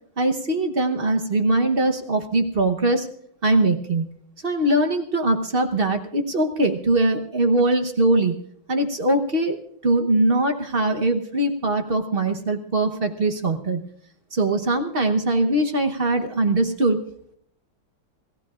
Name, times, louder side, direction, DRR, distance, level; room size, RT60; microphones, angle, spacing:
voice 1, 0.2-3.1 3.4-4.1 4.4-8.4 8.7-9.6 9.8-13.8 14.3-17.0, right 2 dB, 40° right, 4 dB, 0.8 m, -21 dB
27.0 x 15.0 x 2.5 m, 0.67 s
omnidirectional pair, 2.3 m